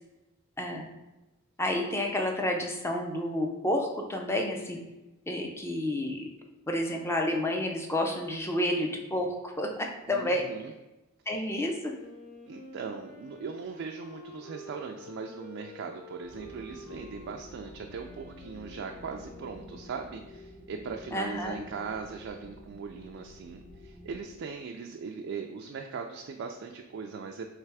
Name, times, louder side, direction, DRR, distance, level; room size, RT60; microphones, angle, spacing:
voice 1, 0.6-0.9 1.6-4.8 5.3-6.2 6.7-10.4 11.3-11.9 21.1-21.5, left 1 dB, 10° left, 2 dB, 0.5 m, -30 dB
voice 2, 10.1-10.7 12.5-27.5, right 5 dB, 55° right, 2 dB, 0.3 m, -39 dB
Wind instrument woodwind instrument, 11.9-20.4, left 1 dB, 80° left, 1.5 m, -49 dB
sound 1, 16.2-24.2, left 1 dB, 55° left, 1.2 m, -50 dB
3.3 x 3.3 x 4.7 m, 1.0 s
head